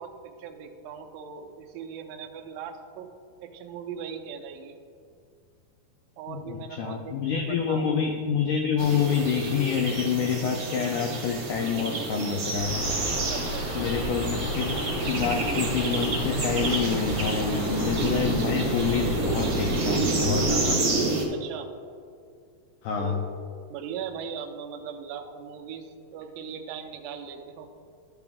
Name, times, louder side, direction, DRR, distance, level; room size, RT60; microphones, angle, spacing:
voice 1, 0.0-3.1 3.4-4.8 6.2-7.9 13.3-13.9 21.3-21.7 23.0-23.3 23.7-27.7, right 7 dB, 80° right, 5 dB, 2.2 m, -39 dB
voice 2, 6.3-12.8 13.8-20.8 22.8-23.2, left 7 dB, 85° left, 2 dB, 1.8 m, -27 dB
sound 1, 8.8-21.3, right 3 dB, 50° right, 1.4 m, -29 dB
sound 2, 12.6-20.8, equal, 65° left, 2.4 m, -33 dB
12.0 x 5.8 x 3.5 m, 2.3 s
omnidirectional pair, 4.5 m